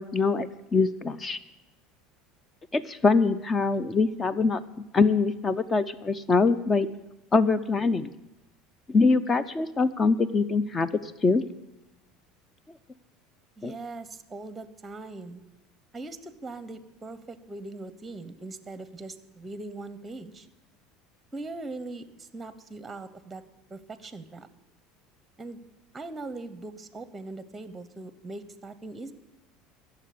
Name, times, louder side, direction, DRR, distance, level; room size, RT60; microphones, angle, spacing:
voice 1, 0.0-1.4 2.7-4.6 4.9-6.9 7.3-8.1 8.9-11.5 13.6-13.7, left 4 dB, 25° left, 15 dB, 0.6 m, -24 dB
voice 2, 13.6-15.4 15.9-20.5 21.3-23.4 23.7-24.5 25.4-25.6 25.9-29.1, right 2 dB, 15° right, 13 dB, 0.9 m, -40 dB
14.0 x 6.8 x 8.4 m, 0.94 s
supercardioid pair, 95°, 0 cm